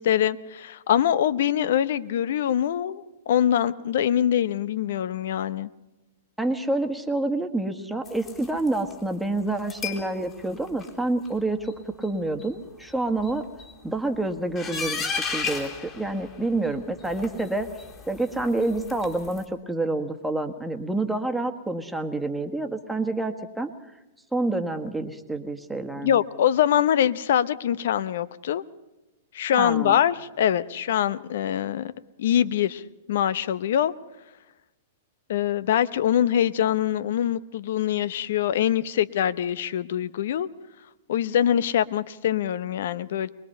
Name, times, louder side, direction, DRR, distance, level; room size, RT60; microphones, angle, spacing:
voice 1, 0.0-5.7 26.0-28.6 29.3-31.9 32.2-32.8 33.1-33.9 35.3-40.5 41.1-43.3, left 10 dB, 65° left, 16 dB, 0.7 m, -24 dB
voice 2, 6.4-13.4 13.8-17.7 18.1-23.7 24.3-26.2 29.6-30.0, right 2 dB, 5° right, 5 dB, 1.5 m, -28 dB
sound 1, 8.0-8.9 9.6-10.1 10.5-10.9 11.2-11.3 11.6-11.7 12.0-12.1 12.4-12.5 12.8-12.9 13.2-13.7 14.6-16.7 17.0-19.4, left 5 dB, 30° left, 3.7 m, -35 dB
23.0 x 21.0 x 5.6 m, 1.0 s
hypercardioid pair, 115°, 0 cm